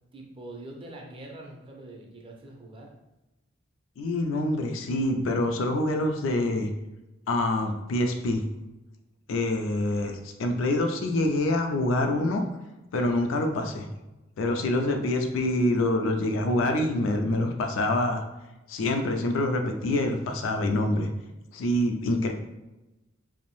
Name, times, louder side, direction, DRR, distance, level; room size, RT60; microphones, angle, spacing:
voice 1, 0.1-2.9, right 1 dB, 25° right, 0 dB, 0.4 m, -44 dB
voice 2, 4.0-6.7 7.3-8.4 9.3-12.4 12.9-13.9 14.4-18.2 18.7-21.1 21.5-22.3, left 1 dB, 75° left, 4 dB, 0.4 m, -26 dB
2.6 x 2.0 x 2.9 m, 1.0 s
head